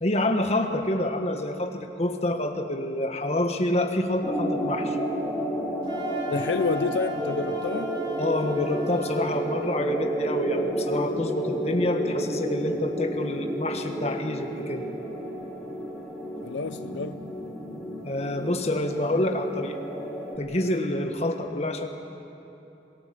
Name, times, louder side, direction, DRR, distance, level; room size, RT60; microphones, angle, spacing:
voice 1, 0.0-5.0 8.2-14.8 18.0-19.8 20.4-21.9, left 1 dB, 35° left, 5 dB, 1.6 m, -27 dB
sound 1, 4.2-20.4, right 1 dB, 5° left, 2.5 m, -31 dB
Wind instrument woodwind instrument, 5.8-9.5, equal, 25° right, 2.6 m, -39 dB
voice 2, 6.3-7.9 16.4-17.2, left 4 dB, 80° left, 11 dB, 0.5 m, -29 dB
27.0 x 18.0 x 7.7 m, 2.9 s
head